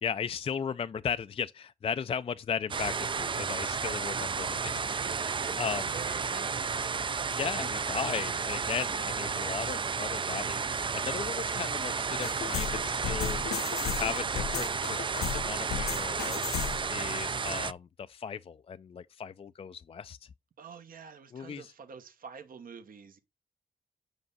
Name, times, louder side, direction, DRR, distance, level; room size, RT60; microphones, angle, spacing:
voice 1, 0.0-5.9 7.3-20.3 21.3-21.7, left 7 dB, 35° left, 0.4 m, -37 dB
sound 1, 2.7-17.7, right 5 dB, 30° right, 0.4 m, -32 dB
voice 2, 4.8-5.7 5.9-6.6 20.6-23.2, right 6 dB, 60° right, 1.1 m, -47 dB
sound 2, 12.2-17.0, left 9 dB, 90° left, 0.7 m, -35 dB
7.8 x 5.3 x 3.9 m
cardioid pair, 60°, 16 cm